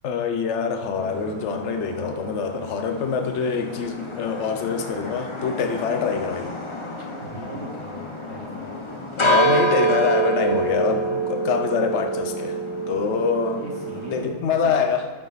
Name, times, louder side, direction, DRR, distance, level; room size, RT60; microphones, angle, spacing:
voice 1, 0.0-6.6 7.0-7.1 9.2-12.6 12.9-13.6 14.1-15.1, left 6 dB, 65° left, 6 dB, 1.1 m, -25 dB
sound 1, 0.9-14.3, right 2 dB, 25° left, 0.9 m, -27 dB
voice 2, 7.2-8.8 13.6-14.8, right 2 dB, 65° right, -2 dB, 1.6 m, -39 dB
11.0 x 7.6 x 4.1 m, 1.3 s
omnidirectional pair, 1.4 m